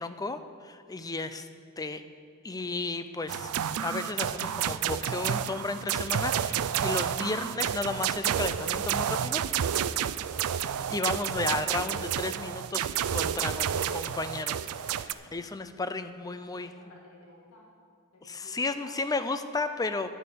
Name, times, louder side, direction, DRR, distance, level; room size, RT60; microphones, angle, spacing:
voice 1, 0.0-1.5 1.8-2.0 2.4-3.5 3.8-9.5 10.6-16.7 18.2-20.1, left 3 dB, 15° left, 10 dB, 0.5 m, -34 dB
sound 1, 3.3-15.1, right 9 dB, 90° right, 0.4 m, -30 dB
voice 2, 16.5-17.7 18.1-19.0, left 1 dB, 80° left, -2 dB, 1.9 m, -54 dB
11.0 x 8.5 x 6.9 m, 2.2 s
head